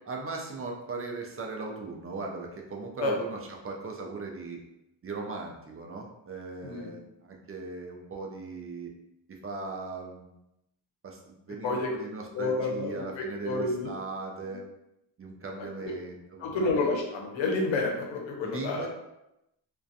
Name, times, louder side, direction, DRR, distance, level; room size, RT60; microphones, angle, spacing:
voice 1, 0.1-4.6 5.0-8.9 9.3-10.3 11.0-14.7 15.2-16.8 18.4-18.9, right 3 dB, 35° right, 0 dB, 0.4 m, -38 dB
voice 2, 6.6-6.9 11.6-11.9 12.3-13.9 14.4-14.5 15.6-15.9 16.4-18.9, left 3 dB, 80° left, 0 dB, 0.7 m, -30 dB
2.4 x 2.2 x 2.6 m, 0.88 s
cardioid pair, 95°, 45 cm